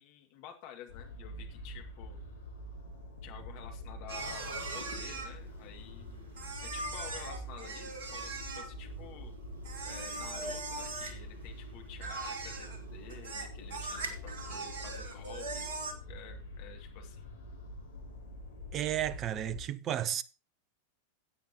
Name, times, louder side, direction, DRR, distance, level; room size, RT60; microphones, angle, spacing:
voice 1, 0.0-2.2 3.2-6.3 6.6-9.4 9.8-17.3, left 9 dB, 45° left, 2.3 m, -50 dB
sound 1, 0.9-19.6, equal, 70° left, 2.8 m, -46 dB
sound 2, 4.1-15.9, right 3 dB, 55° right, 2.0 m, -41 dB
voice 2, 18.7-20.2, right 11 dB, 30° right, 0.6 m, -33 dB
16.0 x 8.5 x 3.0 m
figure-of-eight pair, 90°, 0 cm